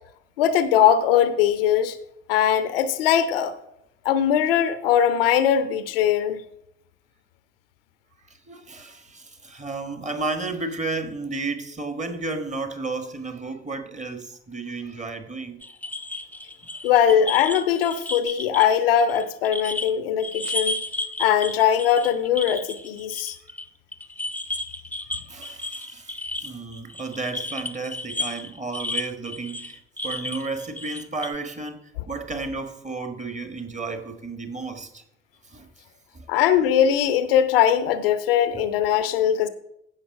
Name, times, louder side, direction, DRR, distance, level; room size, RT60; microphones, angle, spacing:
voice 1, 0.4-2.0 2.3-3.5 4.0-6.4 16.8-20.8 21.2-23.4 36.3-39.5, left 9 dB, 75° left, 0.7 m, -20 dB
voice 2, 8.5-15.6 25.1-31.8 32.1-35.0 35.5-35.7 36.1-36.2, right 3 dB, 25° right, 1.6 m, -32 dB
sound 1, 15.6-19.9 20.2-23.7 23.9-31.4, left 2 dB, 5° left, 0.8 m, -32 dB
15.5 x 5.8 x 4.9 m
figure-of-eight pair, 45°, 29 cm